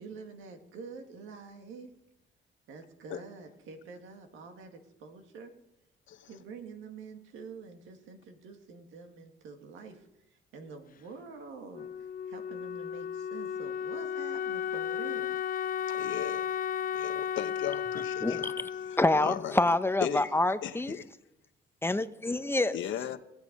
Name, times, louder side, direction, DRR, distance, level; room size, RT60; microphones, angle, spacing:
voice 1, 0.0-1.9 2.7-5.5 6.3-15.4, right 4 dB, 85° right, 5 dB, 2.0 m, -47 dB
Wind instrument woodwind instrument, 11.7-20.4, left 8 dB, 45° left, 0.4 m, -35 dB
voice 2, 15.9-16.5 16.9-18.5 18.9-19.6 20.0-21.0 22.7-23.2, left 10 dB, 75° left, 10 dB, 1.0 m, -37 dB
voice 3, 19.0-21.0 21.8-22.8, left 2 dB, 10° left, 12 dB, 0.7 m, -27 dB
20.0 x 8.3 x 5.3 m, 0.91 s
cardioid pair, 90°, 20 cm